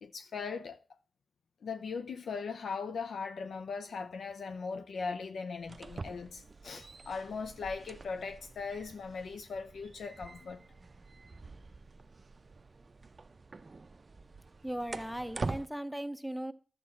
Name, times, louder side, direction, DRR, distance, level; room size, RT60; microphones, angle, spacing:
voice 1, 0.0-0.8 1.6-10.6, left 5 dB, 75° left, 0.5 m, -39 dB
sound 1, 5.6-15.7, right 3 dB, 40° right, 0.5 m, -45 dB
voice 2, 14.6-16.5, right 1 dB, ahead, 0.8 m, -38 dB
11.5 x 7.3 x 4.3 m
cardioid pair, 75°, 0 cm